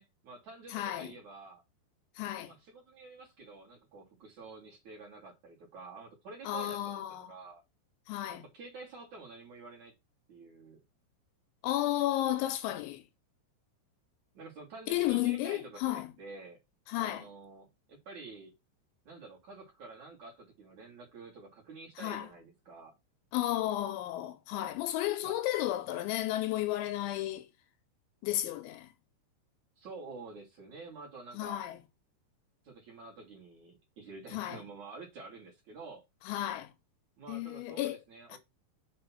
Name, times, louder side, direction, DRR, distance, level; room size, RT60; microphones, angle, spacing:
voice 1, 0.0-1.6 2.4-7.6 8.3-9.9 10.3-10.8 14.3-16.6 16.9-18.5 19.0-23.0 25.2-25.4 29.8-31.6 32.6-36.0 37.2-38.4, right 3 dB, 45° right, 2.8 m, -49 dB
voice 2, 0.7-1.1 2.2-2.5 6.5-7.3 8.1-8.4 11.6-13.0 14.9-16.1 16.9-17.2 22.0-22.3 23.3-27.5 28.2-28.9 31.3-31.8 34.3-34.6 36.3-36.7 37.3-38.0 38.3-38.4, left 14 dB, 85° left, 2.9 m, -33 dB
7.1 x 3.7 x 5.8 m
omnidirectional pair, 5.6 m